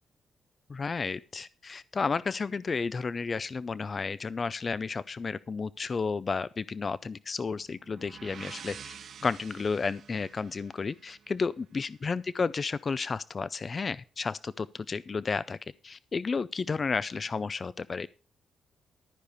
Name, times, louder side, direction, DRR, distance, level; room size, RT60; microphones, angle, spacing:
voice 1, 0.7-8.9 9.2-15.6 15.8-18.1, left 4 dB, 45° left, 18 dB, 0.4 m, -32 dB
sound 1, 7.7-11.5, right 7 dB, 65° right, 0.7 m, -48 dB
13.0 x 4.9 x 6.8 m, 0.37 s
cardioid pair, 70°, 0 cm